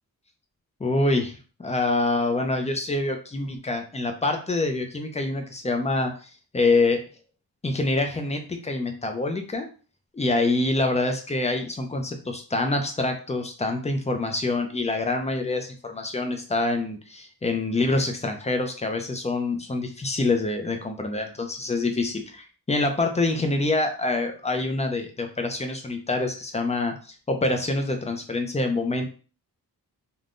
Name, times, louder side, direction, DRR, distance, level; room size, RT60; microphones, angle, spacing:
voice 1, 0.8-7.0 7.6-9.7 10.1-29.1, left 2 dB, 20° left, 5 dB, 0.4 m, -26 dB
3.4 x 2.2 x 2.5 m, 0.37 s
wide cardioid pair, 115°, 38 cm